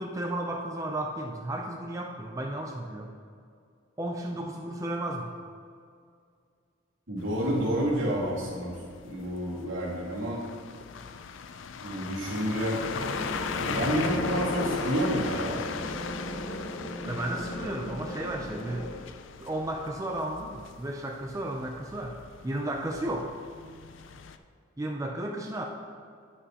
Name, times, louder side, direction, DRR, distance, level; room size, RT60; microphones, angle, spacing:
voice 1, 0.0-3.1 4.0-5.3 17.1-18.9 19.4-22.2 22.4-23.3 24.8-25.6, right 1 dB, 15° right, 1 dB, 0.4 m, -33 dB
voice 2, 7.1-8.7 9.0-10.4 11.8-12.8 13.6-15.6, equal, 75° right, -5 dB, 2.2 m, -29 dB
sound 1, 7.2-24.4, left 6 dB, 70° left, 0.4 m, -38 dB
sound 2, 12.8-18.9, equal, 35° left, 1.3 m, -37 dB
9.0 x 8.7 x 2.9 m, 2.3 s
head